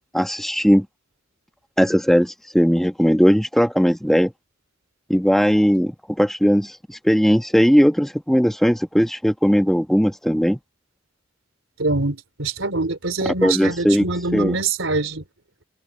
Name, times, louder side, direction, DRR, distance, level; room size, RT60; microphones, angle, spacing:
voice 1, 0.1-0.9 1.8-4.3 5.1-10.6 13.4-14.1 14.3-14.6, equal, ahead, 1.3 m, -18 dB
voice 2, 11.8-15.2, right 3 dB, 85° right, 3.3 m, -24 dB
head